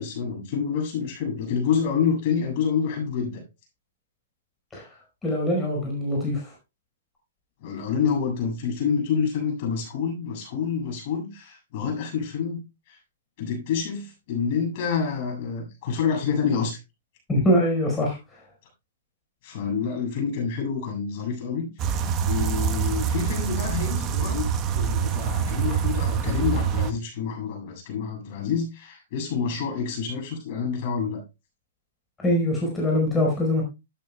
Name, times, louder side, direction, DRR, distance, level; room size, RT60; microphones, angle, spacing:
voice 1, 0.0-3.4 7.6-12.6 12.9-13.0 13.4-16.8 19.4-24.5 24.7-31.2, left 6 dB, 50° left, 1 dB, 7.4 m, -28 dB
voice 2, 5.2-6.5 17.3-18.2 32.2-33.6, left 1 dB, 15° left, -2 dB, 4.8 m, -23 dB
sound 1, 21.8-26.9, right 7 dB, 30° right, 1.2 m, -25 dB
12.5 x 12.0 x 2.3 m, 0.26 s
hypercardioid pair, 125°, 0 cm